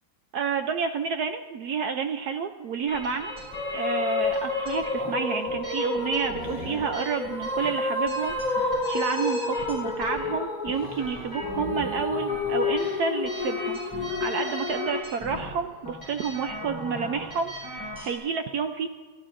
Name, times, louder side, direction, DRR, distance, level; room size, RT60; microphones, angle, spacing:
voice 1, 0.3-3.3 3.7-18.9, right 6 dB, 70° right, 7 dB, 0.9 m, -30 dB
sound 1, 2.9-18.2, equal, 15° left, 5.4 m, -39 dB
sound 2, 3.3-15.0, left 3 dB, 60° left, 0.4 m, -30 dB
28.0 x 12.5 x 2.5 m, 1.3 s
omnidirectional pair, 2.1 m